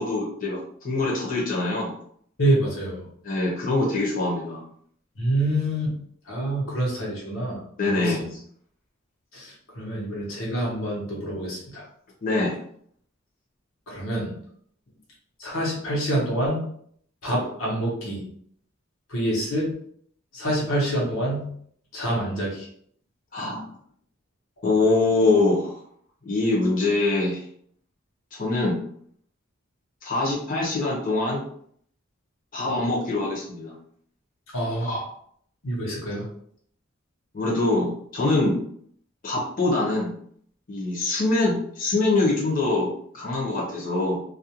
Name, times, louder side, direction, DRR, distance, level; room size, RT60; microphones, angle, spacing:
voice 1, 0.0-1.9 3.2-4.6 7.8-8.4 12.2-12.6 23.3-23.6 24.6-25.8 26.2-27.4 28.3-28.8 30.0-31.4 32.5-33.7 34.7-35.0 37.3-38.6 39.2-40.1 40.7-44.2, left 2 dB, 45° left, -5 dB, 0.8 m, -24 dB
voice 2, 2.4-3.0 5.2-5.9 6.3-7.6 7.8-8.3 9.3-11.8 13.9-14.3 15.4-16.6 17.2-18.2 19.1-19.7 20.3-21.5 21.9-22.7 34.5-34.9 35.6-36.3, right 1 dB, 90° left, -3 dB, 0.9 m, -26 dB
2.4 x 2.2 x 2.8 m, 0.63 s
head